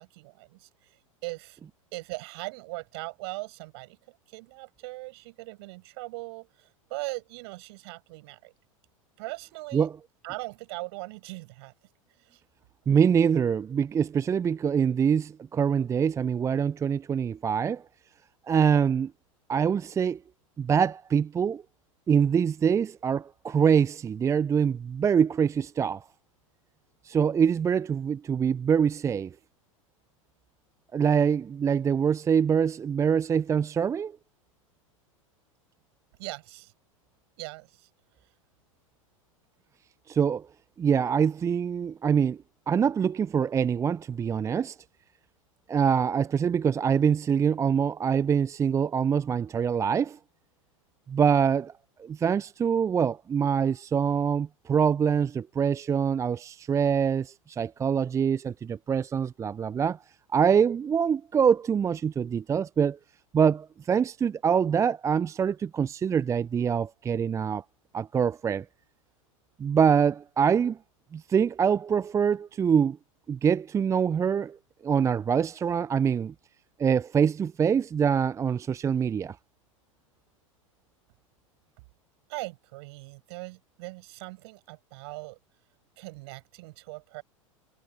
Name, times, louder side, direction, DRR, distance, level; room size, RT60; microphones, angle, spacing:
voice 1, 0.0-1.6 1.9-8.5 9.2-9.9 10.2-11.7 12.2-12.4 36.2-36.7 37.4-37.9 38.2-38.3 82.3-85.4 86.0-87.2, right 25 dB, 50° right, 8.0 m, -40 dB
voice 2, 12.9-17.8 18.5-19.1 19.5-20.2 20.6-21.6 22.1-26.0 27.0-29.3 30.9-34.1 40.1-40.5 40.8-42.4 42.7-44.8 45.7-50.2 51.1-51.7 52.0-60.0 60.3-63.0 63.3-67.6 67.9-68.7 69.6-70.8 71.1-73.0 73.3-74.6 74.8-76.3 76.8-79.4, right 7 dB, 15° right, 0.7 m, -24 dB
figure-of-eight pair, 90°, 17 cm